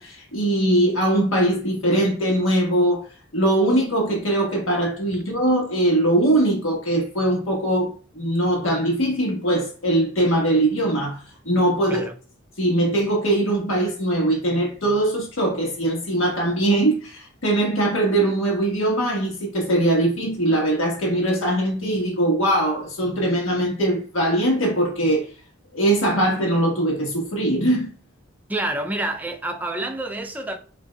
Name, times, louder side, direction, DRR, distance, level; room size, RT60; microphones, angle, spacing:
voice 1, 0.0-3.0 3.3-12.1 12.6-25.2 25.7-27.9, right 1 dB, 75° left, 1.4 m, -21 dB
voice 2, 28.5-30.6, right 1 dB, 10° right, 0.3 m, -28 dB
5.2 x 2.7 x 2.3 m
head